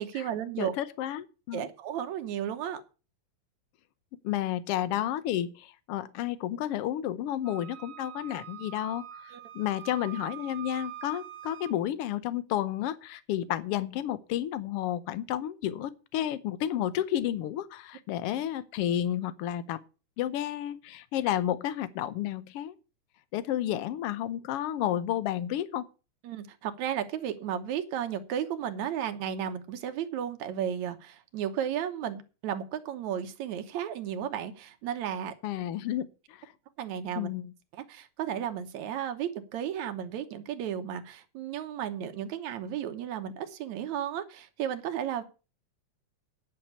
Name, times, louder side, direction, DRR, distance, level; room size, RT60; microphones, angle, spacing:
voice 1, 0.0-0.7 1.5-2.8 9.3-9.4 26.2-35.3 36.8-37.3 37.7-45.2, right 9 dB, 70° right, 2.4 m, -34 dB
voice 2, 0.6-1.7 4.2-19.8 20.2-22.7 23.3-25.9 35.4-36.4 37.2-37.5, left 12 dB, 70° left, 1.5 m, -31 dB
Wind instrument woodwind instrument, 7.4-11.8, right 11 dB, 90° right, 0.9 m, -44 dB
10.5 x 6.4 x 8.1 m
omnidirectional pair, 3.4 m